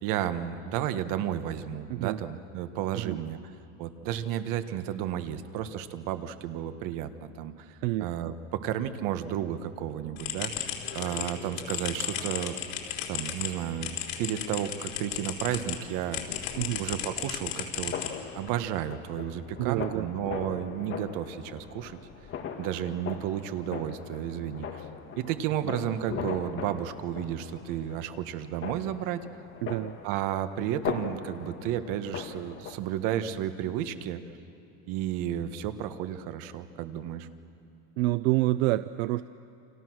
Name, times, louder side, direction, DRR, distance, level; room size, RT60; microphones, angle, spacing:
voice 1, 0.0-3.4 3.8-12.6 13.1-16.5 16.8-17.9 18.3-22.0 22.6-24.8 25.2-29.2 30.0-34.2 34.9-37.3, right 10 dB, 55° right, 10 dB, 1.5 m, -32 dB
voice 2, 7.8-8.3 16.6-16.8 19.6-20.1 25.6-25.7 29.6-30.0 38.0-39.2, right 18 dB, 80° right, 13 dB, 0.6 m, -28 dB
sound 1, 10.2-15.8 16.1-18.5, left 10 dB, 85° left, 3.7 m, -35 dB
sound 2, 16.2-32.7, left 7 dB, 30° left, 2.0 m, -40 dB
29.5 x 26.5 x 6.3 m, 2.8 s
cardioid pair, 155°, 38 cm